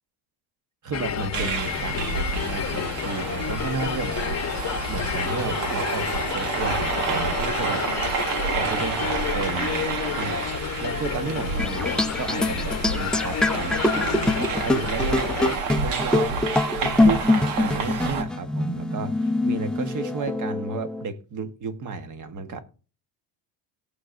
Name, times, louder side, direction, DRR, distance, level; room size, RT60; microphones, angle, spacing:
voice 1, 0.8-4.5 4.9-7.8 8.5-10.4 10.8-16.4 16.8-22.6, right 4 dB, 40° right, 1.2 m, -32 dB
sound 1, 0.9-15.6, left 8 dB, 35° left, 0.9 m, -30 dB
sound 2, 1.3-18.2, right 5 dB, 85° right, 1.6 m, -30 dB
sound 3, 11.6-21.0, left 2 dB, ahead, 0.5 m, -24 dB
17.5 x 6.5 x 2.5 m
cardioid pair, 105°, 47 cm